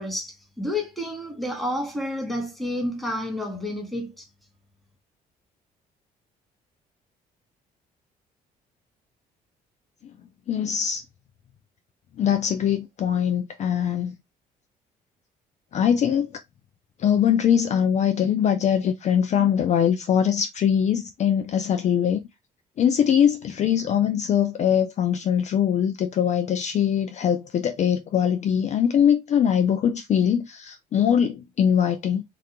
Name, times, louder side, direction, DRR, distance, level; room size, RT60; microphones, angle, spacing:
voice 1, 0.0-4.3, left 1 dB, ahead, 0.9 m, -30 dB
voice 2, 10.5-11.0 12.2-14.2 15.7-16.3 17.0-22.2 22.8-32.2, left 8 dB, 45° left, 0.4 m, -22 dB
2.4 x 2.2 x 2.8 m
cardioid pair, 90°, 16 cm